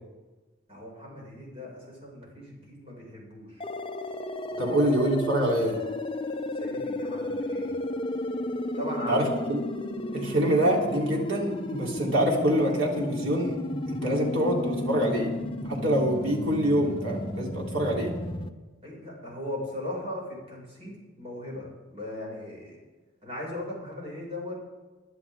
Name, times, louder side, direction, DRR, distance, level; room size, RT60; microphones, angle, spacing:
voice 1, 0.7-3.6 4.5-4.8 6.6-7.7 8.8-9.4 18.8-21.6 21.9-22.8 23.2-24.6, left 1 dB, 30° right, -3 dB, 6.3 m, -38 dB
sound 1, 3.6-18.5, left 1 dB, 25° left, 0.7 m, -33 dB
voice 2, 4.6-5.8 9.1-9.6 10.1-13.6 13.9-15.3 15.6-18.1, right 1 dB, 80° right, -2 dB, 3.7 m, -25 dB
23.0 x 11.0 x 3.8 m, 1.2 s
head